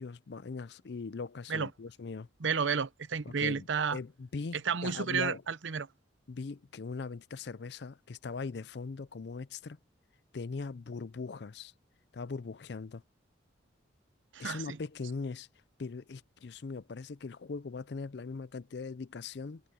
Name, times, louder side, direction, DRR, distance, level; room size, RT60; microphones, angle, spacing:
voice 1, 0.0-2.3 3.2-5.4 6.3-9.8 10.3-11.7 12.1-13.0 14.4-15.5 15.8-19.6, left 4 dB, 60° left, 0.5 m, -40 dB
voice 2, 2.4-4.0 4.6-5.9 14.3-14.8, right 6 dB, 80° right, 0.7 m, -31 dB
head